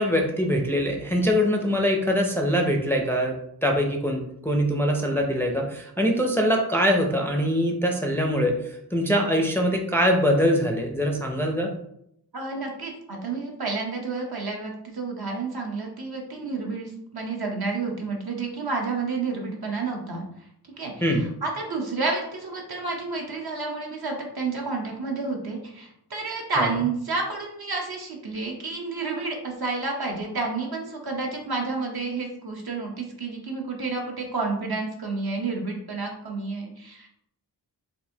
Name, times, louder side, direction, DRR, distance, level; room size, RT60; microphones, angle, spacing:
voice 1, 0.0-3.4 3.6-11.7 21.0-21.3 26.6-26.7, equal, 5° left, 1 dB, 0.4 m, -23 dB
voice 2, 12.3-20.2 20.7-21.1 21.4-37.1, right 3 dB, 60° right, 0 dB, 0.9 m, -30 dB
4.0 x 2.5 x 2.7 m, 0.76 s
wide cardioid pair, 70°, 41 cm